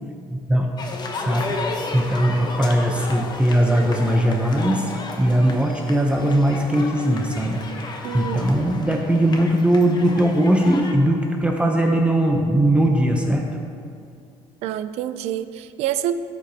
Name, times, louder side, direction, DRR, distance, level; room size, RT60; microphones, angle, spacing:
voice 1, 0.3-0.7 1.2-4.9 5.2-13.5, right 1 dB, 10° right, 1 dB, 0.6 m, -20 dB
sound 1, 0.8-10.9, left 3 dB, 40° left, 0.8 m, -33 dB
voice 2, 8.0-8.5 14.6-16.1, right 12 dB, 80° right, 12 dB, 0.4 m, -27 dB
13.0 x 5.2 x 2.8 m, 2.4 s
cardioid pair, 110°, 11 cm